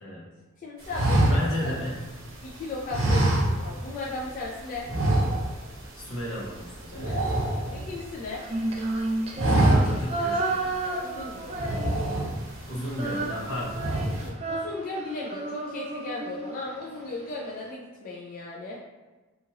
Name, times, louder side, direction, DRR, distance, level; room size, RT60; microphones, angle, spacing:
voice 1, 0.6-1.3 2.4-4.9 6.9-8.4 10.8-12.1 14.2-18.8, left 3 dB, 40° left, -4 dB, 0.3 m, -36 dB
sound 1, 0.9-2.4 2.9-4.0 4.2-4.4 4.8-5.7 6.0-6.2 6.5-8.3 8.7-8.9 9.2-10.2 10.6-10.7 11.5-12.6 13.1-13.4 13.7-14.3, right 1 dB, 85° right, 0.8 m, -24 dB
voice 2, 1.2-2.0 6.0-7.1 9.7-10.7 12.7-14.2, equal, 75° left, -4 dB, 0.8 m, -34 dB
Female singing, 8.4-12.3 12.6-16.8, right 2 dB, 30° right, 0.4 m, -32 dB
2.8 x 2.4 x 2.9 m, 1.2 s
head